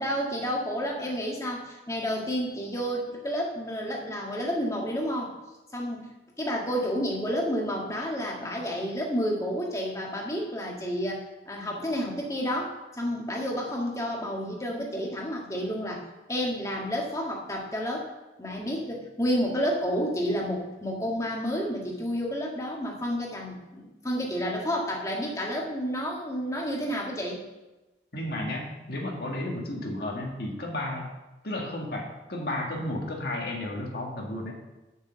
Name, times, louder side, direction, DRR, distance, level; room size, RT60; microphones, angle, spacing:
voice 1, 0.0-5.4 5.7-6.1 6.4-18.1 18.4-27.4, equal, 20° left, -1 dB, 1.6 m, -30 dB
voice 2, 28.1-31.1 31.4-34.5, left 1 dB, 60° left, 0 dB, 1.7 m, -33 dB
6.6 x 6.3 x 7.6 m, 1.1 s
head